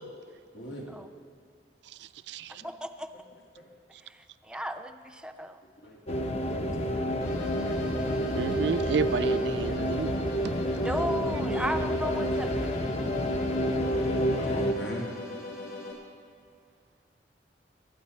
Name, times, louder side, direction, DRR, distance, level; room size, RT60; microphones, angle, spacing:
voice 1, 0.5-1.0 2.5-2.7 5.8-7.8 10.7-11.0 14.4-15.0, equal, 90° left, -2 dB, 2.6 m, -41 dB
voice 2, 2.0-2.5 8.3-10.1 10.4-10.5, right 5 dB, 70° right, 14 dB, 0.3 m, -31 dB
voice 3, 2.6-3.1 4.0-5.6 10.7-12.7, equal, 5° right, 7 dB, 0.5 m, -35 dB
sound 1, 6.1-14.7, equal, 35° left, 0.8 m, -29 dB
sound 2, 7.2-15.9, left 1 dB, 60° left, 3.0 m, -40 dB
21.0 x 9.6 x 4.3 m, 2.2 s
head